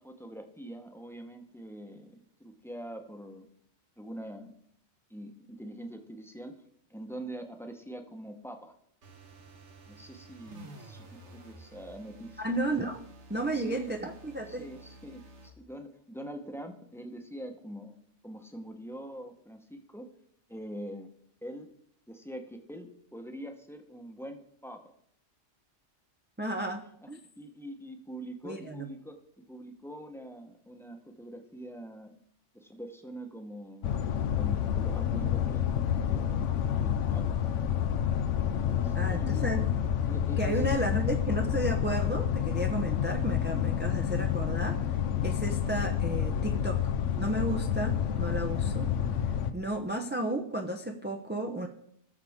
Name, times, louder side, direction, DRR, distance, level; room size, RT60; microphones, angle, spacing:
voice 1, 0.0-3.5 4.0-4.5 5.1-6.6 6.9-8.7 9.9-12.6 13.5-13.9 14.5-18.0 18.2-20.1 20.5-21.1 21.4-21.7 22.1-24.8 27.0-27.1 27.4-32.2 32.5-34.0 34.3-35.7 36.0-37.4 38.8-39.6 40.1-40.9 43.7-43.8, equal, ahead, 4 dB, 0.9 m, -44 dB
sound 1, 9.0-15.6, right 2 dB, 70° right, 1.6 m, -52 dB
voice 2, 12.4-13.0 13.3-14.7 26.4-27.2 28.4-28.9 38.9-39.6 40.4-44.8 45.2-46.8 47.2-48.9 49.5-51.7, right 1 dB, 15° right, 3 dB, 0.5 m, -33 dB
sound 2, 33.8-49.5, left 9 dB, 80° left, 1.0 m, -29 dB
18.0 x 6.7 x 3.6 m, 0.69 s
omnidirectional pair, 1.2 m